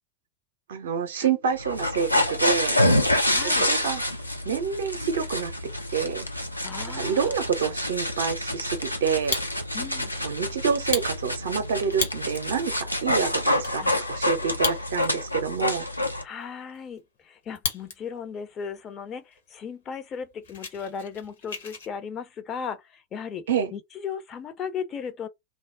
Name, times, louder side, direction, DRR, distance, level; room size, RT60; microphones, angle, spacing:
voice 1, 0.7-2.8 3.4-4.0 4.4-5.5 5.9-6.2 6.9-9.4 10.2-15.9 23.5-23.7, right 7 dB, 60° right, 0.5 m, -27 dB
sound 1, 1.6-16.2, left 1 dB, 90° left, 0.5 m, -27 dB
voice 2, 3.3-3.7 6.6-7.3 9.7-10.1 13.8-14.0 16.2-23.4 23.7-25.3, left 6 dB, 30° left, 0.5 m, -36 dB
Fire, 9.1-9.9 10.3-10.4 10.8-12.5 13.0-13.1 13.3-13.7 14.5-15.3 15.6-15.7 16.2-18.0 18.3-18.7 19.3-19.4 19.7-19.8 20.1-21.9, left 4 dB, 65° left, 0.9 m, -34 dB
2.4 x 2.0 x 3.4 m
figure-of-eight pair, 90°, 0 cm